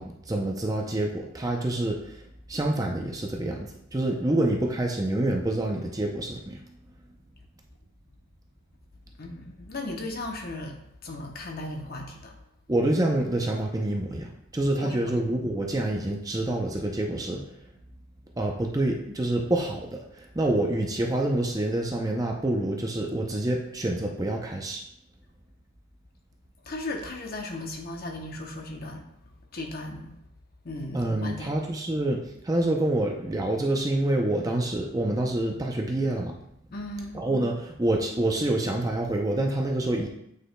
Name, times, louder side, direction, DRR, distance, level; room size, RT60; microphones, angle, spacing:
voice 1, 0.0-2.2 2.5-6.6 12.7-14.3 14.5-17.4 18.4-24.8 30.9-36.4 37.1-40.1, right 1 dB, 15° right, 1 dB, 0.5 m, -27 dB
voice 2, 9.2-10.8 11.0-12.3 14.8-15.1 26.6-29.1 29.5-30.1 30.6-31.6 36.7-37.2, left 2 dB, 45° left, 2 dB, 0.8 m, -36 dB
8.7 x 4.9 x 2.2 m, 0.76 s
head